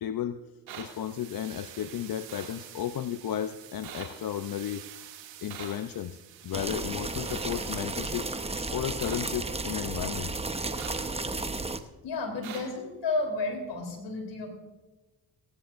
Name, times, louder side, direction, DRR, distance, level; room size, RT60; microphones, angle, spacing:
voice 1, 0.0-0.4 0.8-4.9 5.4-6.2 6.4-8.3 8.7-10.3, left 10 dB, 50° left, 11 dB, 0.7 m, -33 dB
sound 1, 0.7-0.8 2.3-2.5 3.8-4.0 5.5-5.7 7.2-7.5 9.0-9.2 10.8-10.9 12.4-12.6, right 9 dB, 90° right, 2.4 m, -41 dB
sound 2, 0.8-8.9, right 12 dB, 75° right, 1.1 m, -48 dB
sound 3, 6.5-11.8, right 3 dB, 15° right, 0.9 m, -33 dB
voice 2, 12.0-14.5, left 3 dB, 65° left, 3 dB, 3.7 m, -32 dB
18.0 x 17.0 x 2.6 m, 1.2 s
supercardioid pair, 50°, 45 cm